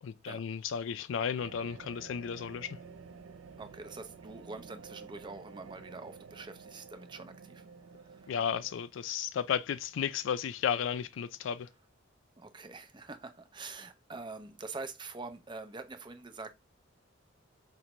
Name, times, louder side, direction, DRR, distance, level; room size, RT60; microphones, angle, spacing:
voice 1, 0.0-2.8 8.3-11.7, left 7 dB, 70° left, 0.3 m, -34 dB
sound 1, 1.4-8.7, right 5 dB, 80° right, 0.3 m, -51 dB
voice 2, 3.6-7.7 8.0-8.3 12.4-16.5, right 3 dB, 25° right, 0.5 m, -45 dB
5.1 x 2.2 x 2.9 m
head